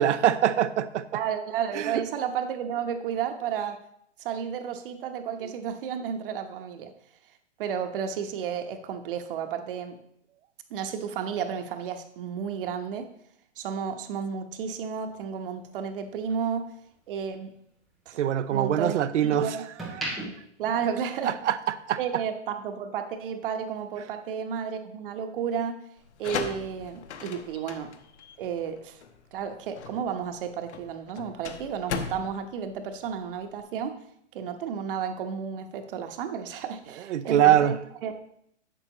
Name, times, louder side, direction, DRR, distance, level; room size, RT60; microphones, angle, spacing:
voice 1, 0.0-1.0 1.7-1.9 18.2-19.6 20.1-20.2 21.2-21.6 21.9-22.0 37.1-37.7, right 11 dB, 75° right, 12 dB, 0.7 m, -23 dB
voice 2, 1.1-3.8 4.2-6.9 7.6-10.0 10.7-13.1 13.6-16.7 17.1-17.5 18.1-18.2 18.5-19.0 19.3-19.6 20.6-21.4 22.0-25.8 26.2-27.9 28.4-29.0 29.3-34.0 34.3-37.8 38.0-38.1, right 7 dB, 45° right, 7 dB, 1.0 m, -32 dB
sound 1, 15.0-17.3 17.7-19.1 19.6-21.7 22.0-22.3, right 1 dB, ahead, 0.3 m, -39 dB
sound 2, 26.0-33.6, left 7 dB, 65° left, 1.1 m, -38 dB
11.0 x 7.7 x 3.0 m, 0.71 s
hypercardioid pair, 150°, 36 cm